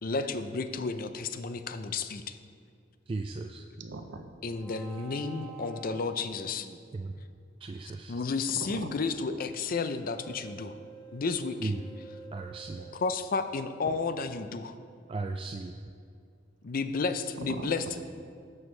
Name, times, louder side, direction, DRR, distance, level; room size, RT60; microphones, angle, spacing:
voice 1, 0.0-2.4 4.4-6.7 8.1-10.7 11.1-11.7 12.9-14.8 16.6-17.8, left 4 dB, 50° left, 10 dB, 0.5 m, -32 dB
voice 2, 3.1-3.6 6.6-7.1 7.6-8.2 11.6-11.8 12.3-12.8 15.1-15.7, right 3 dB, 30° right, 5 dB, 0.3 m, -36 dB
voice 3, 3.8-4.4 8.5-9.0 12.8-12.9 13.8-14.3 17.3-18.1, right 2 dB, 70° right, 7 dB, 0.6 m, -42 dB
sound 1, 4.5-6.7 9.9-13.1, right 5 dB, 20° left, 1.1 m, -49 dB
12.0 x 7.1 x 3.3 m, 2.2 s
head